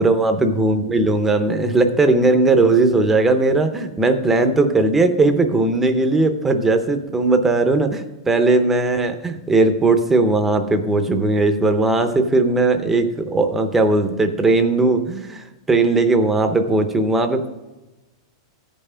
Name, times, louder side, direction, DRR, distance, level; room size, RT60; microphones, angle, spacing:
voice 1, 0.0-17.5, right 2 dB, 10° right, 7 dB, 0.6 m, -18 dB
14.5 x 5.6 x 4.9 m, 1.1 s
supercardioid pair, 170°, 2 cm